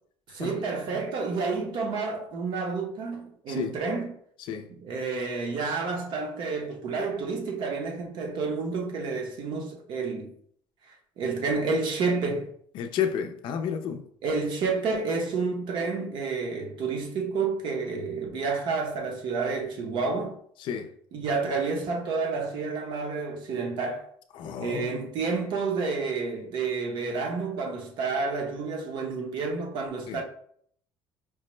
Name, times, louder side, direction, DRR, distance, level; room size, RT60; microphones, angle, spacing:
voice 1, 0.3-4.2 4.7-10.3 11.2-12.5 14.2-20.3 21.1-24.1 24.6-30.2, right 4 dB, 55° right, 0.8 m, -30 dB
voice 2, 12.7-14.0 20.6-20.9 24.3-25.0 30.1-30.2, left 8 dB, 55° left, 0.4 m, -31 dB
4.6 x 2.1 x 3.0 m
cardioid pair, 145°, 10 cm